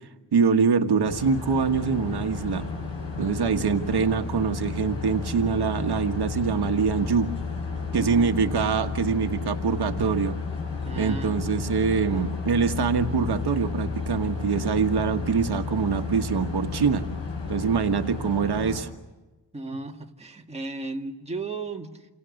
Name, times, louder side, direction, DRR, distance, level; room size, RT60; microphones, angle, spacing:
voice 1, 0.3-2.7 3.2-7.3 7.9-10.3 11.0-17.0 17.5-18.9 19.7-19.8, right 6 dB, 65° right, 6 dB, 1.4 m, -24 dB
sound 1, 1.0-18.8, left 5 dB, 90° left, 6.8 m, -32 dB
voice 2, 7.9-8.3 10.8-11.4 19.5-22.1, right 3 dB, 15° right, 2 dB, 1.9 m, -35 dB
29.0 x 27.5 x 6.5 m, 1.1 s
wide cardioid pair, 160°, 43 cm